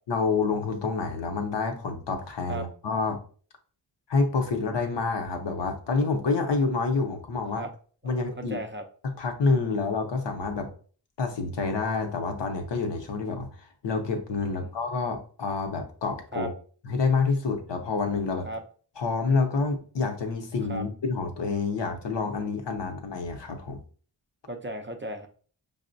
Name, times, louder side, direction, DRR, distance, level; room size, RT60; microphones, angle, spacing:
voice 1, 0.1-3.2 4.1-7.6 8.0-8.6 9.2-10.7 11.2-16.5 16.8-18.5 19.0-23.8, left 4 dB, 70° left, 5 dB, 0.7 m, -28 dB
voice 2, 8.0-8.8 14.5-14.7 16.3-16.5 18.4-18.6 20.7-20.9 24.5-25.3, right 1 dB, 30° right, 4 dB, 0.4 m, -36 dB
5.2 x 2.1 x 2.5 m, 0.43 s
wide cardioid pair, 50°, 44 cm